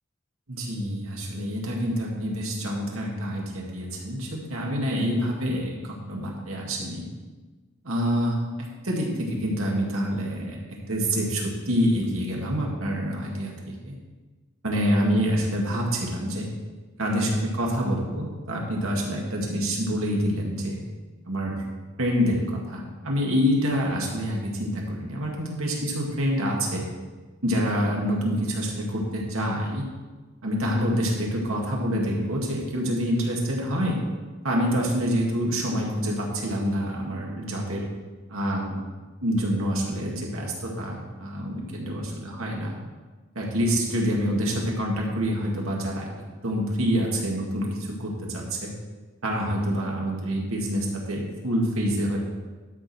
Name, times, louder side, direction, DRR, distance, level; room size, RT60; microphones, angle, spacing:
voice 1, 0.5-7.1 7.8-14.0 14.6-16.5 17.0-20.8 21.2-21.6 22.0-26.9 27.4-29.8 30.4-34.0 34.4-37.9 38.3-38.8 39.2-42.8 43.4-46.1 46.4-48.7 49.2-52.2, equal, 85° right, -2 dB, 2.1 m, -27 dB
12.0 x 6.4 x 4.4 m, 1.3 s
head